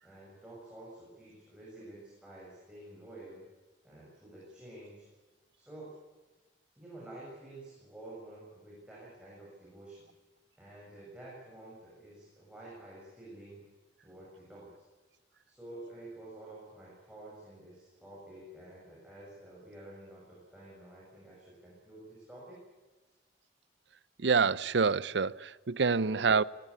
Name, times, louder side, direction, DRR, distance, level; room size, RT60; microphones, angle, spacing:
voice 1, 0.0-3.4 3.8-5.1 5.5-5.9 6.8-10.1 10.6-13.6 14.0-14.7 15.4-22.6 25.9-26.3, right 1 dB, 5° right, 7.5 m, -50 dB
voice 2, 24.2-26.4, right 5 dB, 75° right, 0.7 m, -27 dB
21.0 x 19.5 x 8.7 m
head